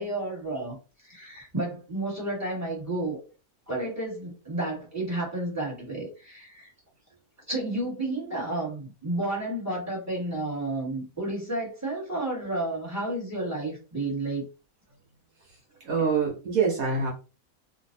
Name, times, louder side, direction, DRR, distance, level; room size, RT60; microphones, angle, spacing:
voice 1, 0.0-3.2 3.7-6.7 7.5-14.5, right 2 dB, 10° right, -5 dB, 1.6 m, -31 dB
voice 2, 15.8-17.1, right 5 dB, 70° right, -2 dB, 1.3 m, -25 dB
2.9 x 2.6 x 2.6 m, 0.33 s
omnidirectional pair, 1.6 m